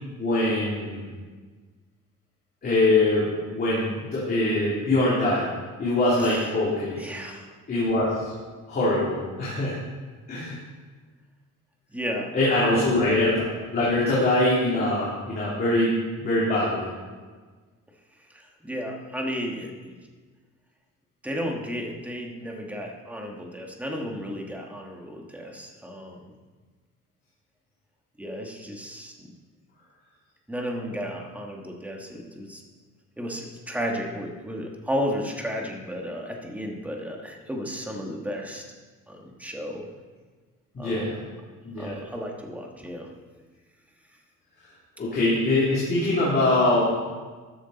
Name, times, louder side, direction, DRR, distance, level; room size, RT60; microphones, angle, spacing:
voice 1, 0.2-1.0 2.6-5.4 5.8-7.0 7.7-8.3 8.7-9.8 10.3-10.6 12.3-15.9 16.2-16.9 40.7-41.2 41.6-41.9 45.0-46.8, left 2 dB, 30° left, -7 dB, 2.8 m, -23 dB
voice 2, 7.0-7.5 11.9-12.3 12.6-13.0 18.3-20.0 21.2-26.3 28.2-29.3 30.5-32.6 33.2-38.6 39.1-39.8 40.8-41.1 41.8-43.1, equal, 5° right, 1 dB, 1.3 m, -33 dB
13.5 x 11.0 x 4.0 m, 1.4 s
cardioid pair, 170°, 32 cm